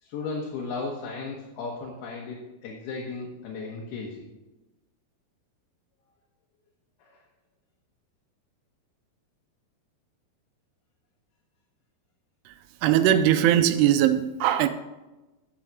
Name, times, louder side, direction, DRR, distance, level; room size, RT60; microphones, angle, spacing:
voice 1, 0.0-4.2 7.0-7.2, left 4 dB, 75° left, 3.0 m, -35 dB
voice 2, 12.8-14.7, right 11 dB, 80° right, 2.6 m, -20 dB
9.0 x 7.1 x 6.4 m
omnidirectional pair, 4.8 m